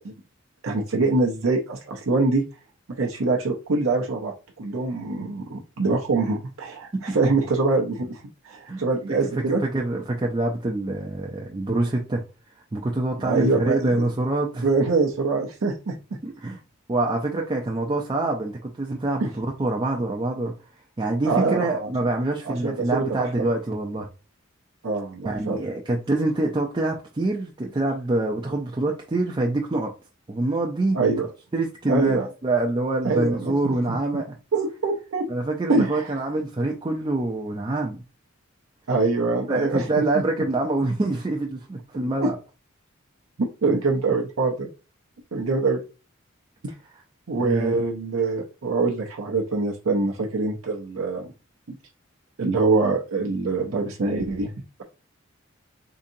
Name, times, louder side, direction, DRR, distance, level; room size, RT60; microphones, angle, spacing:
voice 1, 0.6-2.4 3.0-9.6 13.2-14.0 14.6-16.0 19.2-19.3 21.3-21.9 22.4-23.4 24.8-25.6 30.9-31.3 31.9-32.3 33.0-34.0 34.5-35.3 35.7-36.1 38.9-40.2 42.2-42.3 43.4-44.7 45.3-45.8 47.3-51.3 51.7-51.8 52.4-54.5, right 3 dB, 85° right, 0.6 m, -24 dB
voice 2, 9.2-12.2 12.7-14.7 16.2-16.6 16.9-20.5 21.0-24.1 25.2-29.9 30.3-31.0 31.5-34.3 35.3-38.0 39.5-42.4 47.4-47.8, right 2 dB, 20° right, 0.4 m, -25 dB
3.9 x 2.7 x 2.6 m
head